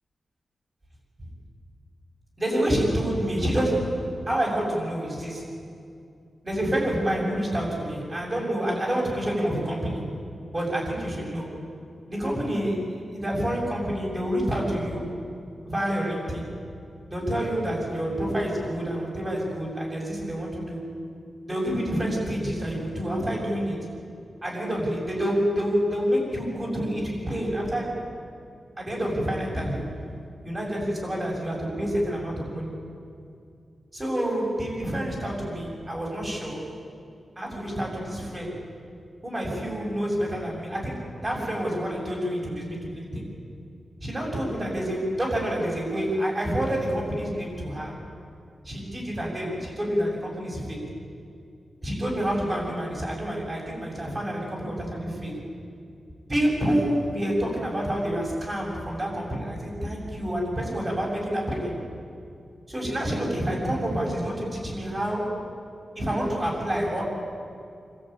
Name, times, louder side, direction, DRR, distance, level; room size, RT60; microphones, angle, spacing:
voice 1, 2.4-5.5 6.4-10.2 10.5-11.6 12.1-15.1 15.6-16.5 17.1-20.9 21.5-23.9 24.4-28.1 28.8-30.0 30.4-32.8 33.9-36.7 37.4-38.6 39.2-43.3 44.0-48.0 48.6-50.9 51.8-55.4 56.3-61.8 62.7-65.4 66.0-67.0, equal, 25° right, -2 dB, 7.2 m, -28 dB
26.5 x 14.0 x 9.3 m, 2.4 s
wide cardioid pair, 100°, 0 cm